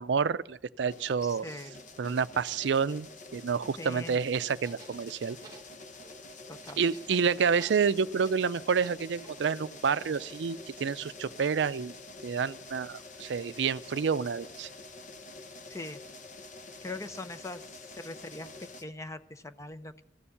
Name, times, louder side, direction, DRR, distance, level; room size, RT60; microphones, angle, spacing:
voice 1, 0.0-1.5 2.0-5.4 6.8-11.9 12.2-14.7, right 6 dB, 75° right, 15 dB, 0.4 m, -29 dB
sound 1, 0.9-18.8, left 2 dB, 45° left, 1.0 m, -47 dB
voice 2, 1.2-1.8 3.8-4.2 6.5-6.8 15.7-16.0 16.8-17.6 18.0-20.0, left 2 dB, 15° left, 11 dB, 0.6 m, -41 dB
sound 2, 3.5-3.8 4.6-6.2 6.6-7.3 7.6-9.5, right 4 dB, 20° right, 1.3 m, -53 dB
15.0 x 7.1 x 9.9 m, 0.79 s
head